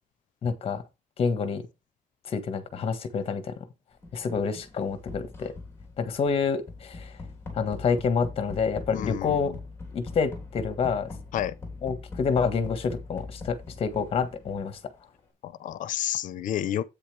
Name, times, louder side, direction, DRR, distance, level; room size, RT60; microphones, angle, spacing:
voice 1, 0.4-0.8 1.2-1.7 2.2-3.5 4.1-5.5 6.0-7.1 7.5-9.5 9.9-11.1 11.8-14.8, left 5 dB, 40° left, 1.5 m, -28 dB
sound 1, 4.0-14.9, left 3 dB, 15° left, 3.4 m, -42 dB
voice 2, 8.9-9.6 11.3-11.5 15.4-16.8, left 11 dB, 65° left, 0.8 m, -30 dB
9.9 x 8.6 x 3.4 m
cardioid pair, 165°, 14 cm